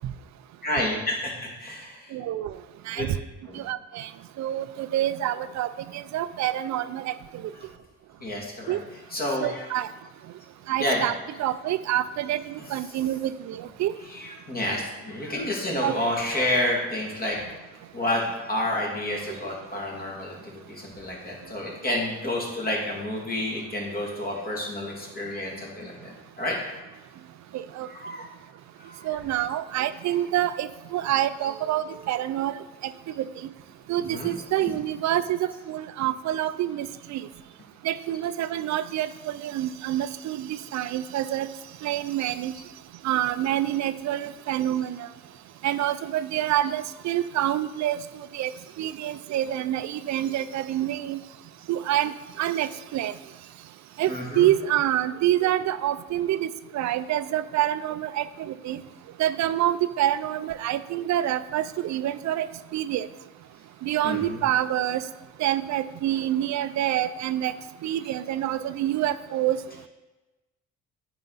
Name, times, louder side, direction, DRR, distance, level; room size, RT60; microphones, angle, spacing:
voice 1, 0.6-2.1 3.0-3.1 3.5-3.6 7.5-7.7 8.2-8.8 9.1-9.7 10.8-11.2 12.6-13.0 14.0-17.4 17.9-26.6 27.7-28.3 28.8-29.3 29.9-30.3 34.1-34.3 34.6-34.7 42.2-42.3 42.5-42.6 46.6-46.7 54.1-54.5 64.0-64.4, left 1 dB, 30° left, -2 dB, 2.4 m, -30 dB
voice 2, 2.1-2.5 2.9-3.1 3.6-4.1 4.4-7.1 8.7-8.8 9.4-9.9 10.7-11.1 11.4-13.9 15.8-15.9 27.5-27.9 29.0-32.5 33.2-33.3 33.9-37.2 37.8-41.5 41.8-42.5 43.0-45.1 45.6-48.0 48.3-48.5 48.8-51.2 51.7-52.1 52.4-53.1 54.0-54.1 54.4-56.5 56.7-58.8 59.2-62.5 62.7-63.1 63.8-65.0 65.4-67.5 67.8-69.6, right 12 dB, 65° right, 13 dB, 0.5 m, -27 dB
9.1 x 4.9 x 4.0 m, 1.2 s
cardioid pair, 90°, 30 cm